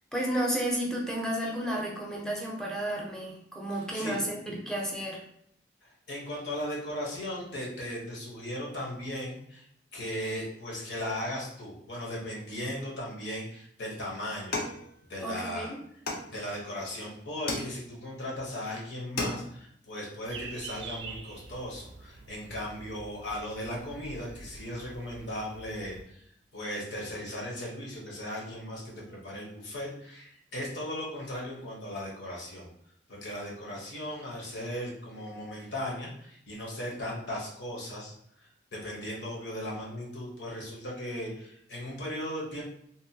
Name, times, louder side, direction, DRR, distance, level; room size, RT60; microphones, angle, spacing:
voice 1, 0.1-5.2 15.2-15.8, right 1 dB, 5° left, -1 dB, 0.5 m, -32 dB
voice 2, 3.7-4.2 5.8-9.6 9.9-14.6 15.1-15.7 16.3-26.2 26.5-32.7 33.1-42.6, left 1 dB, 80° left, -3 dB, 0.9 m, -37 dB
sound 1, 14.5-15.5 16.1-16.8 17.5-18.2 18.6-18.7 19.0-19.7, left 2 dB, 60° left, 0.5 m, -35 dB
sound 2, 20.3-26.0, right 3 dB, 85° right, 0.4 m, -46 dB
2.8 x 2.1 x 2.7 m, 0.68 s
head